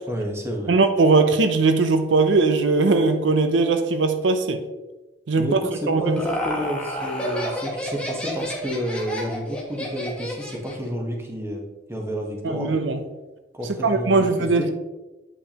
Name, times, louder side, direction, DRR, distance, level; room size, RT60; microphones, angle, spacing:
voice 1, 0.1-0.7 5.4-11.6 11.9-12.7 13.5-14.7, equal, 15° right, 1 dB, 1.1 m, -30 dB
voice 2, 0.7-4.6 5.3-5.6 5.9-6.2 12.4-13.0 13.8-14.7, right 3 dB, 80° right, 8 dB, 0.6 m, -19 dB
Laughter, 5.7-10.9, equal, 5° left, 1.0 m, -30 dB
8.4 x 5.4 x 2.9 m, 1.1 s
head